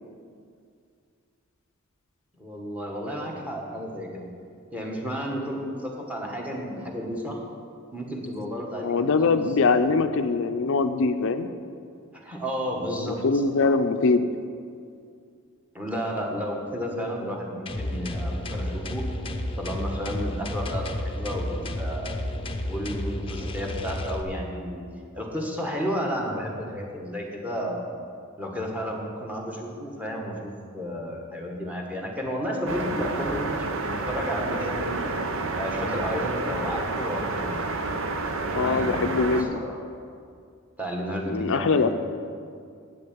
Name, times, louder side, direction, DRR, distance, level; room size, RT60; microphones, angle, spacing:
voice 1, 2.4-4.3 4.7-7.4 7.9-9.4 9.6-9.9 12.1-13.2 15.7-19.0 19.6-22.2 22.7-24.8 25.1-27.8 28.4-35.0 35.5-37.6 38.5-39.8 40.8-41.9, equal, 5° right, -1 dB, 1.5 m, -32 dB
voice 2, 8.8-11.5 13.0-14.3 38.5-39.6 41.3-41.9, left 4 dB, 65° left, 9 dB, 0.5 m, -23 dB
sound 1, 17.7-24.2, left 1 dB, 25° left, 0.7 m, -31 dB
sound 2, 32.7-39.4, right 3 dB, 65° right, 0.8 m, -29 dB
8.6 x 6.7 x 8.6 m, 2.3 s
head